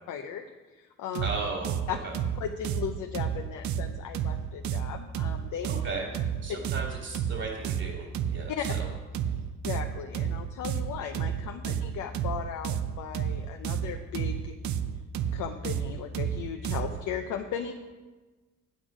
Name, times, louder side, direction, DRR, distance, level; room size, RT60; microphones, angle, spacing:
voice 1, 0.1-0.5 0.7-1.3 1.9-2.0 2.4-5.7 8.6-8.7 9.6-14.5 15.3-17.7, left 8 dB, 75° left, 4 dB, 0.7 m, -36 dB
sound 1, 1.1-17.0, right 8 dB, 70° right, 0.6 m, -31 dB
voice 2, 1.2-2.2 5.7-6.1 6.4-8.9, right 3 dB, 55° right, -1 dB, 2.2 m, -36 dB
8.8 x 7.9 x 5.0 m, 1.2 s
cardioid pair, 90°, 30 cm